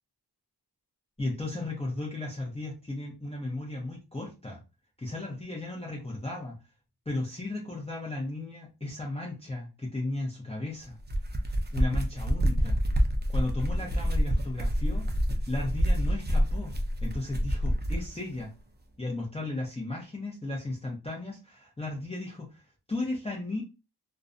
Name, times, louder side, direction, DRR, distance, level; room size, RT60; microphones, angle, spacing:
voice 1, 1.2-4.6 5.0-6.5 7.1-11.0 11.7-12.8 13.3-15.0 15.3-16.7 17.0-18.5 19.0-23.6, left 2 dB, 15° left, -3 dB, 0.7 m, -35 dB
sound 1, 10.9-18.1, equal, 25° right, 0.5 m, -27 dB
2.4 x 2.1 x 2.5 m, 0.29 s
wide cardioid pair, 55°, 41 cm